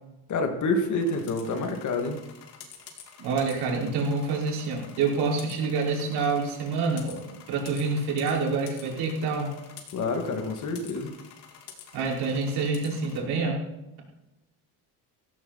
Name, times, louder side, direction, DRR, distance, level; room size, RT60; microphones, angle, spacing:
voice 1, 0.3-2.2 9.9-11.1, left 2 dB, 45° left, 5 dB, 2.4 m, -28 dB
sound 1, 1.0-13.2, left 8 dB, 80° left, 3.6 m, -49 dB
voice 2, 3.2-7.2 7.5-9.5 11.9-13.6, right 4 dB, 75° right, -2 dB, 5.5 m, -27 dB
16.5 x 14.5 x 4.4 m, 0.96 s
cardioid pair, 145°, 39 cm